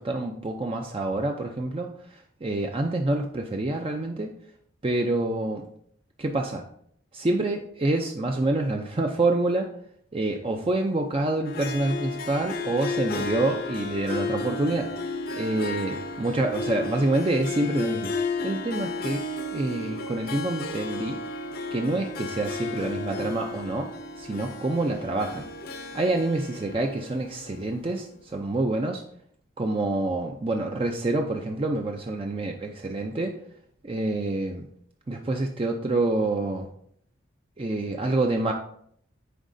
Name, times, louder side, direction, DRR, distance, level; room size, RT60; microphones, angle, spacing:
voice 1, 0.0-4.3 4.8-5.7 6.2-6.6 7.1-9.7 10.1-14.9 15.3-18.1 18.4-19.2 19.5-21.2 21.7-23.9 24.2-25.5 25.9-29.0 29.6-33.3 33.8-34.7 35.1-36.7 37.6-38.5, right 2 dB, 25° right, 2 dB, 0.4 m, -27 dB
Harp, 11.4-27.9, left 3 dB, 45° left, 0.7 m, -33 dB
10.0 x 4.1 x 2.6 m, 0.65 s
head